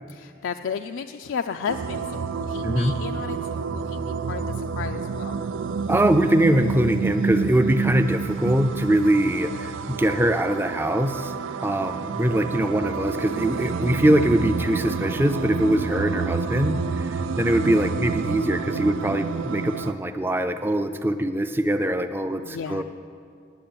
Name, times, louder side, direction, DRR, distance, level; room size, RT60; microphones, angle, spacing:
voice 1, 0.1-5.4 12.0-12.7 22.4-22.8, left 6 dB, 85° left, 7 dB, 0.3 m, -34 dB
sound 1, 1.7-19.9, right 5 dB, 90° right, 0.4 m, -29 dB
voice 2, 2.6-3.0 5.9-11.3 11.6-22.8, right 1 dB, 10° right, 9 dB, 0.4 m, -22 dB
10.5 x 8.0 x 8.6 m, 2.3 s
head